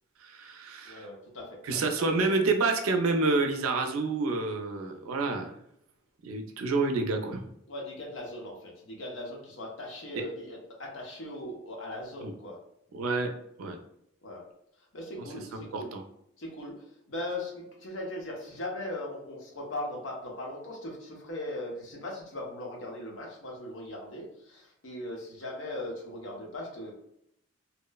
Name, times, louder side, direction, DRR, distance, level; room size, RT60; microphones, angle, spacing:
voice 1, 0.2-1.1 1.6-5.5 6.2-7.4 10.1-10.2 12.2-12.3 12.9-13.3 13.6-13.8 15.5-16.0, right 3 dB, 85° right, 4 dB, 0.4 m, -28 dB
voice 2, 0.8-1.8 2.1-2.2 7.7-12.6 14.2-14.4 14.9-15.9 16.4-26.9, left 1 dB, 65° left, -1 dB, 0.8 m, -39 dB
2.9 x 2.0 x 2.2 m, 0.75 s
head